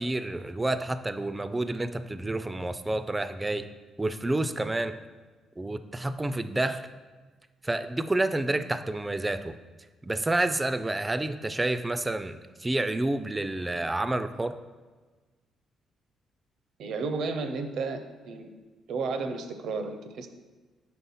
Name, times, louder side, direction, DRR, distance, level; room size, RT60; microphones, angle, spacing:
voice 1, 0.0-3.7 4.0-5.0 5.6-6.8 7.6-9.5 10.0-14.6, right 2 dB, 15° right, 11 dB, 0.3 m, -29 dB
voice 2, 16.8-18.5 18.9-20.3, right 4 dB, 75° right, 7 dB, 0.5 m, -32 dB
4.3 x 4.2 x 5.5 m, 1.3 s
cardioid pair, 90°, 0 cm